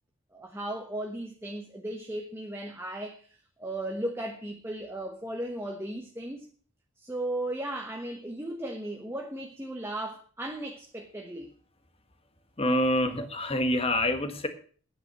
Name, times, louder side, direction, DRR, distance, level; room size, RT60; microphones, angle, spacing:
voice 1, 0.3-3.2 3.6-6.5 7.0-11.5, right 1 dB, 10° right, 1.1 m, -36 dB
voice 2, 12.6-14.5, left 1 dB, 30° left, 1.6 m, -26 dB
9.8 x 9.0 x 7.6 m
head